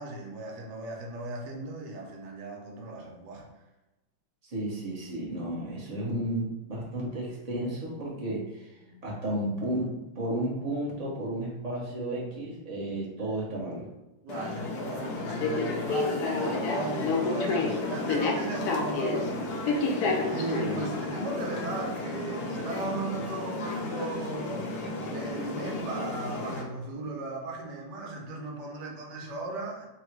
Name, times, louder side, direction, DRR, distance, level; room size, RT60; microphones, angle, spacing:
voice 1, 0.0-3.5 8.8-9.0 14.2-24.7 25.1-29.9, right 2 dB, 65° right, -1 dB, 1.4 m, -37 dB
voice 2, 4.4-13.9 20.6-20.9, right 1 dB, 30° right, -5 dB, 0.8 m, -33 dB
sound 1, 14.3-26.6, left 3 dB, 70° left, 1.0 m, -31 dB
3.8 x 2.3 x 4.5 m, 1.0 s
omnidirectional pair, 2.1 m